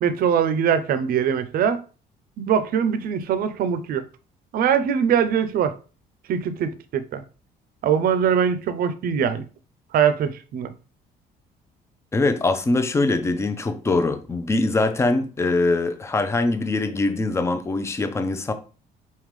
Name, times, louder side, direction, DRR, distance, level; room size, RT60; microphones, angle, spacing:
voice 1, 0.0-1.8 2.4-4.0 4.5-5.8 6.3-7.2 7.8-9.4 9.9-10.7, right 8 dB, 60° right, 0.6 m, -22 dB
voice 2, 12.1-18.5, left 2 dB, 15° left, 0.6 m, -22 dB
4.3 x 3.7 x 3.1 m
cardioid pair, 110°, 17 cm